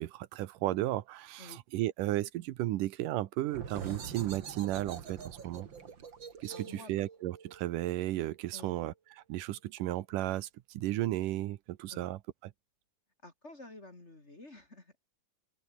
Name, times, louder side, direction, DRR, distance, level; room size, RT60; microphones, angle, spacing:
voice 1, 0.0-5.7 6.4-8.9 9.3-12.2, right 15 dB, 85° right, 2.5 m, -34 dB
sound 1, 3.5-8.9, right 6 dB, 40° right, 2.6 m, -46 dB
voice 2, 6.5-7.0 8.5-8.8 11.9-12.1 13.2-15.1, left 2 dB, 20° left, 2.8 m, -51 dB
open air
omnidirectional pair, 3.8 m